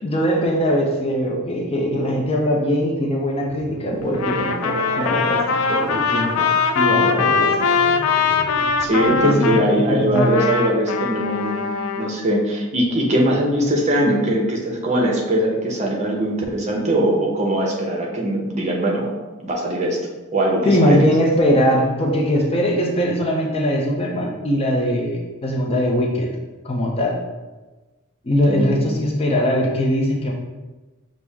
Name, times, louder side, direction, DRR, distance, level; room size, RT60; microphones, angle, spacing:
voice 1, 0.0-6.5 6.7-7.7 9.1-9.6 9.9-10.3 20.6-26.3 26.6-27.2 28.2-30.3, equal, 30° left, -1 dB, 0.5 m, -21 dB
sound 1, 3.4-9.4, right 4 dB, 60° right, 0.4 m, -33 dB
Trumpet, 4.1-9.7 10.2-12.1, left 5 dB, 85° left, 0.4 m, -21 dB
voice 2, 8.8-11.7 12.0-19.1 19.4-20.0 20.3-21.1 28.5-28.8, right 1 dB, 35° right, -1 dB, 0.8 m, -21 dB
6.0 x 2.0 x 3.4 m, 1.2 s
head